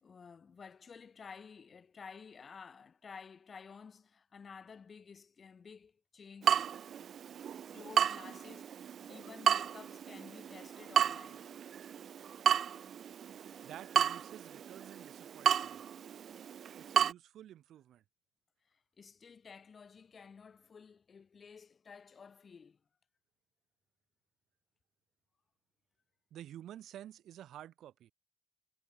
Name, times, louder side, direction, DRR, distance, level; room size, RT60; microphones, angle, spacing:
voice 1, 0.0-6.7 7.7-11.5 18.7-22.8, left 6 dB, 40° left, 0.9 m, -53 dB
Water tap faucet / Drip, 6.4-17.1, right 8 dB, 60° right, 0.3 m, -33 dB
voice 2, 13.6-15.8 16.8-18.0 26.3-28.1, right 11 dB, 80° right, 0.7 m, -51 dB
cardioid pair, 130°, 0 cm